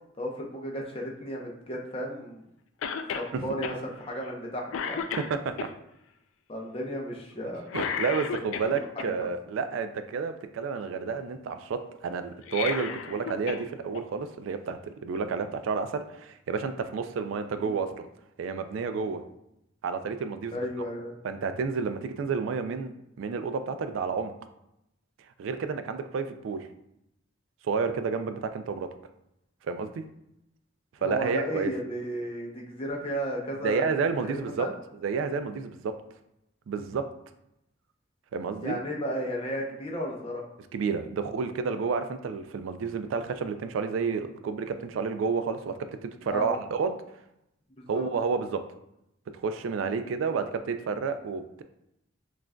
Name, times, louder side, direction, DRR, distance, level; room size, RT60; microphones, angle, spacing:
voice 1, 0.2-2.4 3.0-5.0 6.5-7.7 8.6-9.3 17.5-17.7 20.5-21.2 31.0-34.7 38.6-40.4 46.3-46.6 47.8-48.0 50.2-50.4, equal, 30° left, -1 dB, 0.7 m, -34 dB
Cough, 2.8-3.3 3.6-3.8 4.3-4.4 4.7-5.7 7.7-9.1 12.3-13.6 13.9-14.0 15.2-15.3, left 6 dB, 80° left, 0.3 m, -33 dB
voice 2, 5.2-5.7 7.7-18.1 18.4-19.2 19.8-20.6 21.2-22.9 23.2-24.3 25.4-26.7 27.6-28.9 29.6-30.0 31.0-31.7 33.6-34.7 35.0-35.9 36.7-37.1 38.3-38.8 40.7-45.7 46.0-47.0 47.9-48.6 49.3-51.6, right 5 dB, 70° right, 9 dB, 0.3 m, -30 dB
6.0 x 2.5 x 2.2 m, 0.82 s
head